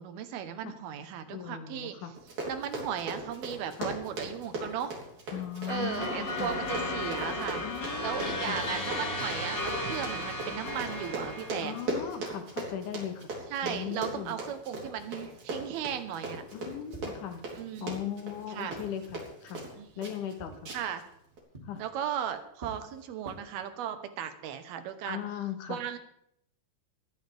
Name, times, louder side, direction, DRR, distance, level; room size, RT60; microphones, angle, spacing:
voice 1, 0.0-2.0 2.5-5.0 5.7-7.6 8.0-11.8 13.5-16.4 17.5-18.0 18.5-18.8 19.8-20.1 20.7-21.0 21.8-25.2 25.7-26.0, right 9 dB, 75° right, 9 dB, 2.9 m, -36 dB
voice 2, 1.3-2.1 3.8-3.9 5.3-6.5 7.6-8.6 11.6-13.3 13.6-14.4 16.5-17.4 17.8-19.7 20.0-20.7 21.6-21.8 25.1-25.8, left 9 dB, 65° left, 8 dB, 2.4 m, -38 dB
Run, 2.1-19.7 20.0-20.3 20.6-21.0 21.4-21.5, right 2 dB, 50° right, 4.7 m, -38 dB
sound 1, 5.7-11.9, left 2 dB, 35° left, 4.2 m, -34 dB
sound 2, 16.9-18.2 18.8-20.1 20.4-23.4, right 2 dB, 15° right, 2.3 m, -50 dB
20.5 x 14.0 x 3.5 m, 0.73 s
omnidirectional pair, 4.5 m